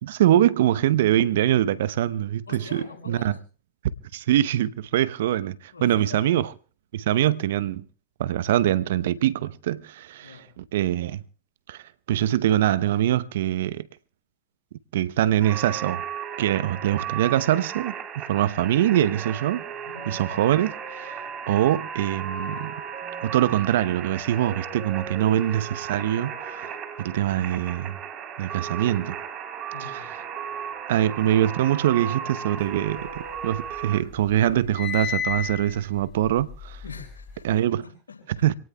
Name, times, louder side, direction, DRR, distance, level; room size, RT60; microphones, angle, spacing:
voice 1, 0.0-3.3 4.1-6.5 6.9-7.8 8.2-11.2 11.7-11.8 12.1-13.9 14.9-16.0 16.4-19.6 20.1-21.2 21.5-22.8 23.2-26.7 27.0-28.0 28.4-29.1 29.8-30.1 30.9-36.8 37.4-37.8 38.3-38.5, right 12 dB, 65° right, 0.7 m, -23 dB
voice 2, 2.5-3.4 5.7-6.4 10.2-10.5 19.8-20.2 29.7-30.0 36.8-38.5, left 5 dB, 85° left, 6.0 m, -43 dB
sound 1, 15.4-34.0, right 8 dB, 35° right, 3.6 m, -35 dB
sound 2, 32.7-33.8 34.1-37.5, left 7 dB, 30° left, 3.9 m, -33 dB
27.0 x 18.0 x 2.3 m
hypercardioid pair, 95°, 0 cm